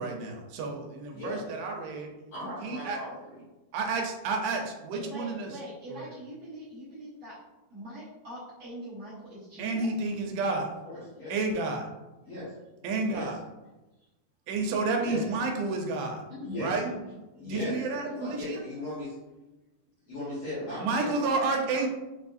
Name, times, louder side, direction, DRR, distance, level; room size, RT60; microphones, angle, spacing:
voice 1, 0.0-2.1 2.6-3.0 3.7-5.5 5.9-6.0 9.6-10.7 11.3-11.9 12.8-13.4 14.5-16.2 16.6-16.8 17.5-18.6 20.8-21.9, right 3 dB, 85° right, 2 dB, 2.6 m, -30 dB
voice 2, 1.1-1.4 2.3-3.4 10.8-11.3 12.2-12.5 13.1-13.3 15.0-15.2 16.4-16.7 17.4-19.1 20.0-21.4 21.7-21.9, left 1 dB, 65° left, -9 dB, 1.7 m, -37 dB
voice 3, 4.9-7.3 7.7-9.9 16.8-17.1 18.1-18.4, right 1 dB, 65° right, -11 dB, 1.7 m, -42 dB
6.4 x 2.6 x 2.4 m, 1.0 s
omnidirectional pair, 4.6 m